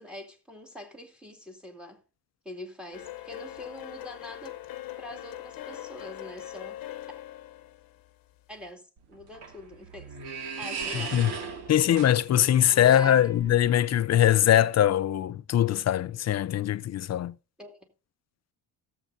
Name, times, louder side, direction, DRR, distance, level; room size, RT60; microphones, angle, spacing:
voice 1, 0.0-2.0 2.4-4.6 5.0-6.8 8.5-11.2 12.7-13.3 17.6-17.8, left 1 dB, ahead, 2.3 m, -44 dB
sound 1, 2.9-8.7, left 13 dB, 60° left, 0.9 m, -42 dB
sound 2, 9.0-13.9, right 5 dB, 80° right, 2.2 m, -38 dB
voice 2, 11.7-17.3, left 11 dB, 45° left, 0.5 m, -22 dB
17.0 x 7.6 x 2.6 m
cardioid pair, 115°, 39 cm